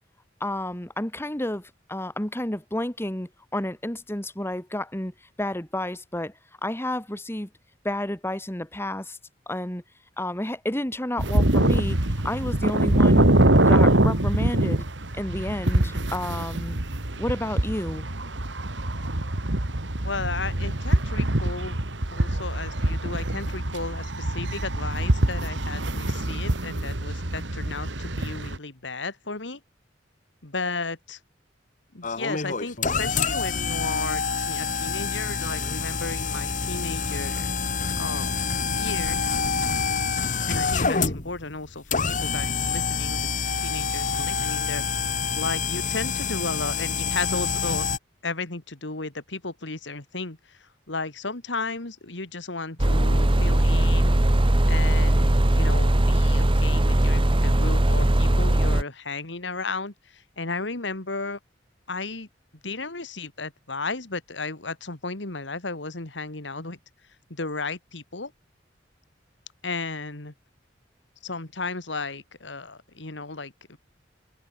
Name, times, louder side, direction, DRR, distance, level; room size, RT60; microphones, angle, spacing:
voice 1, 0.4-6.3 6.6-7.5 7.8-9.2 9.5-9.8 10.2-12.0 12.2-13.3 13.5-14.9 15.1-16.8 17.2-18.1, left 1 dB, 15° left, 2.0 m, -30 dB
sound 1, 11.2-28.6, right 1 dB, 85° right, 2.6 m, -24 dB
voice 2, 20.0-21.8 22.1-29.6 30.4-31.2 31.9-37.5 37.9-38.3 38.6-39.4 40.5-43.3 43.6-44.8 45.4-47.9 48.2-54.1 54.7-61.4 61.9-62.3 62.6-66.8 67.3-68.3 69.6-70.3 71.2-73.8, left 3 dB, 80° left, 2.6 m, -34 dB
sound 2, 32.0-48.0, left 5 dB, 45° left, 2.2 m, -27 dB
sound 3, 52.8-58.8, right 1 dB, 30° right, 1.1 m, -20 dB
head